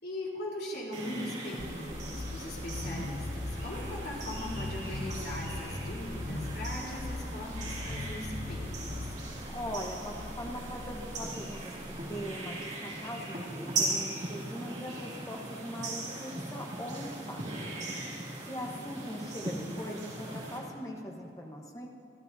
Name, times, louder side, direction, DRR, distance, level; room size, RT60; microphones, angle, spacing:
voice 1, 0.0-9.2, left 1 dB, 55° left, -4 dB, 3.6 m, -40 dB
sound 1, 0.9-20.6, right 2 dB, 40° right, 2.2 m, -39 dB
sound 2, 1.6-12.5, left 2 dB, 35° left, 0.6 m, -40 dB
voice 2, 9.5-11.7 12.1-17.4 17.7-17.8 18.5-21.9, equal, 20° left, 1 dB, 1.0 m, -41 dB
24.0 x 13.5 x 2.7 m, 2.5 s
head